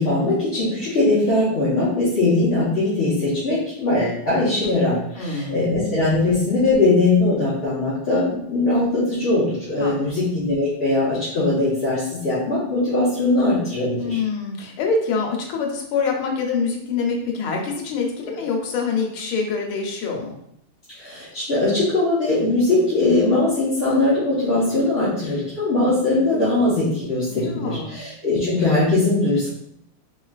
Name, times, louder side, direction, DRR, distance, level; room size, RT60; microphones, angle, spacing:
voice 1, 0.0-14.2 21.0-29.5, left 2 dB, 40° left, -12 dB, 1.0 m, -20 dB
voice 2, 5.2-5.6 9.8-10.1 14.0-20.3 27.3-28.0, left 4 dB, 80° left, 0 dB, 1.6 m, -25 dB
3.7 x 3.1 x 2.3 m, 0.73 s
omnidirectional pair, 2.3 m